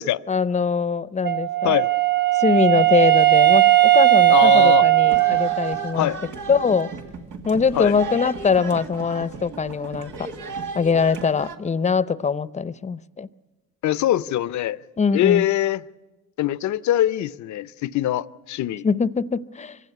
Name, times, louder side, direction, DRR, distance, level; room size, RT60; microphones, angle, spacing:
voice 1, 0.3-1.7 2.4-6.1 6.5-6.9 7.4-10.3 10.7-13.3 15.0-15.5 18.8-19.8, left 5 dB, 25° left, 0.7 m, -22 dB
Wind instrument woodwind instrument, 1.2-6.0, right 17 dB, 35° right, 1.1 m, -17 dB
voice 2, 4.3-4.8 6.0-6.2 7.7-7.9 13.8-14.8 15.1-15.8 16.4-18.9, left 13 dB, 70° left, 0.7 m, -22 dB
sound 1, 5.0-11.6, right 4 dB, 90° right, 2.0 m, -35 dB
24.5 x 16.0 x 9.7 m
cardioid pair, 90°, 30 cm